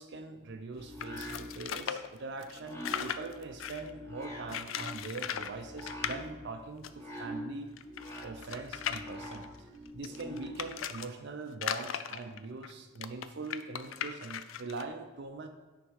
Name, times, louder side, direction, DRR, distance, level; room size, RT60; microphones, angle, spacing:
voice 1, 0.0-7.7 8.2-15.5, right 3 dB, 60° right, 5 dB, 0.5 m, -42 dB
sound 1, 0.8-10.7, equal, 15° left, 1.2 m, -45 dB
sound 2, 1.0-3.9 4.5-5.5 5.8-6.2 6.8-6.9 7.1-7.2 7.8-11.1 11.5-14.8, left 9 dB, 75° left, 0.4 m, -38 dB
9.6 x 3.5 x 4.7 m, 1.2 s
head